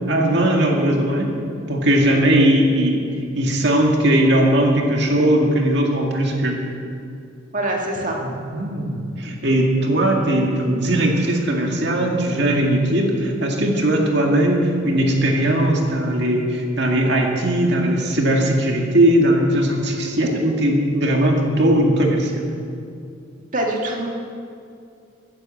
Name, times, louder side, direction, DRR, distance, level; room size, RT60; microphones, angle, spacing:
voice 1, 0.0-1.3 1.7-3.0 3.3-6.6 8.2-22.5, right 1 dB, 55° right, 0 dB, 2.0 m, -19 dB
voice 2, 7.5-8.2 23.5-24.1, right 1 dB, 40° right, 0 dB, 2.1 m, -24 dB
15.5 x 9.7 x 7.8 m, 2.4 s
head